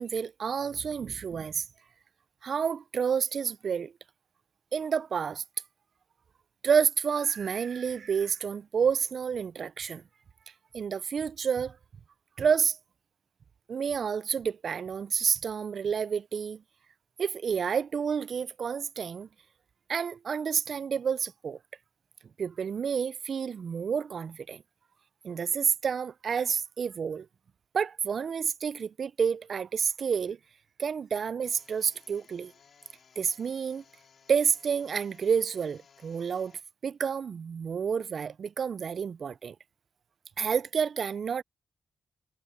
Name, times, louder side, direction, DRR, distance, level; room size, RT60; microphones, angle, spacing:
voice 1, 0.0-1.7 2.4-3.9 4.7-5.4 6.6-10.0 10.7-11.8 12.4-12.8 13.7-16.6 17.2-19.3 19.9-21.6 22.4-24.6 25.2-27.3 27.7-30.4 30.8-32.5 33.2-33.8 34.3-36.5 36.8-39.6 40.4-41.4, right 6 dB, 65° right, 0.3 m, -29 dB
sound 1, 31.4-36.6, left 6 dB, 65° left, 5.0 m, -60 dB
cardioid pair, 80°, 0 cm